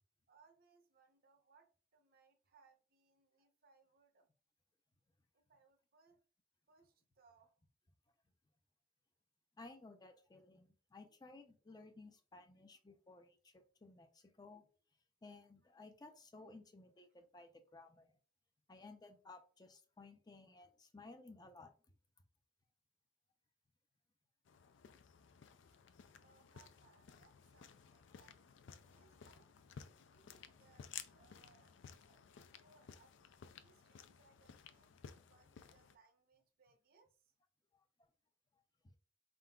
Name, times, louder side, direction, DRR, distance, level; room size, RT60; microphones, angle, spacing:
voice 1, 0.3-4.3 5.3-6.2 6.7-7.6 25.6-25.8 26.2-29.5 30.0-37.3, right 4 dB, 55° right, 5 dB, 0.7 m, -71 dB
voice 2, 9.6-14.6 15.2-18.1 18.7-21.7 35.0-35.2 37.7-37.8, left 3 dB, 20° left, 6 dB, 0.5 m, -58 dB
sound 1, 24.5-36.0, left 7 dB, 85° left, 0.4 m, -57 dB
4.5 x 3.8 x 2.2 m, 0.40 s
head